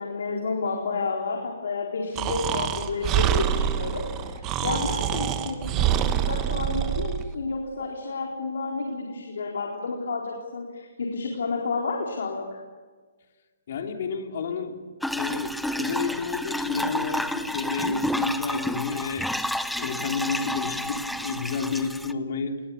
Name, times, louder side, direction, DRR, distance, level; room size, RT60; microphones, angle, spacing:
voice 1, 0.0-12.5, left 4 dB, 75° left, 0 dB, 4.1 m, -30 dB
Breathing, 2.1-7.3, right 10 dB, 20° right, 1.1 m, -26 dB
voice 2, 13.7-14.8 15.1-19.3 19.8-22.6, left 4 dB, 50° left, 3 dB, 3.3 m, -30 dB
sound 1, 15.0-22.1, left 1 dB, ahead, 0.7 m, -30 dB
28.5 x 20.0 x 7.2 m, 1.4 s
hypercardioid pair, 160°, 0 cm